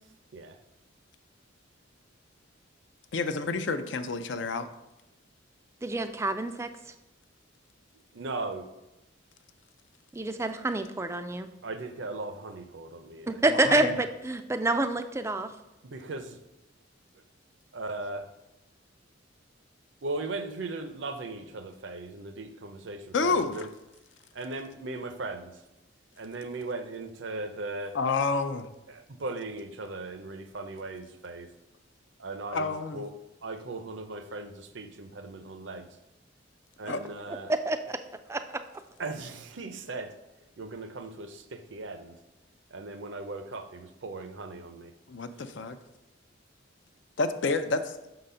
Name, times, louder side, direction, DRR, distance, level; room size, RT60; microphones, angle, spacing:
voice 1, 3.1-4.7 13.5-14.0 23.1-23.7 27.9-28.7 32.5-33.0 36.9-37.0 45.1-45.8 47.2-47.9, left 4 dB, 60° left, 10 dB, 0.5 m, -29 dB
voice 2, 5.8-6.7 10.1-11.5 13.3-15.5 37.5-38.0 38.3-38.4, right 2 dB, 15° right, 9 dB, 0.3 m, -27 dB
voice 3, 8.1-8.7 11.6-13.4 15.8-16.4 17.7-18.3 20.0-23.7 24.3-25.6 26.2-28.0 28.9-31.5 32.2-33.1 33.4-35.9 36.8-37.5 39.0-40.1 40.6-42.2 42.7-44.9, right 2 dB, 65° right, 9 dB, 0.6 m, -38 dB
6.4 x 3.9 x 5.5 m, 0.96 s
head